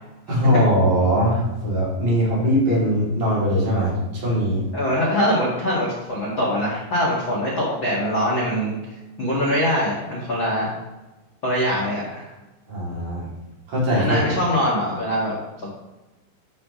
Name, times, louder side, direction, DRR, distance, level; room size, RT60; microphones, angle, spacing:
voice 1, 0.3-4.6 12.7-13.3 13.7-14.2, equal, 40° right, -6 dB, 3.5 m, -21 dB
voice 2, 4.7-8.7 9.2-10.7 11.4-12.3 14.0-15.3 15.6-15.8, equal, 85° left, -6 dB, 1.0 m, -23 dB
13.5 x 5.7 x 3.2 m, 1.1 s
omnidirectional pair, 5.7 m